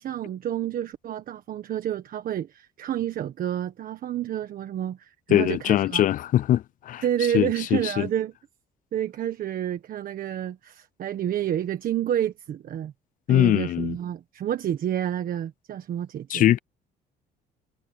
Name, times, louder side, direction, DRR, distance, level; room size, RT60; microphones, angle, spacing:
voice 1, 0.0-6.0 7.0-8.3 8.9-12.9 13.3-16.5, right 10 dB, 55° right, 1.5 m, -29 dB
voice 2, 5.3-7.0 7.3-8.1 13.3-14.0 16.3-16.6, left 12 dB, 55° left, 0.4 m, -22 dB
cardioid pair, 110°, 17 cm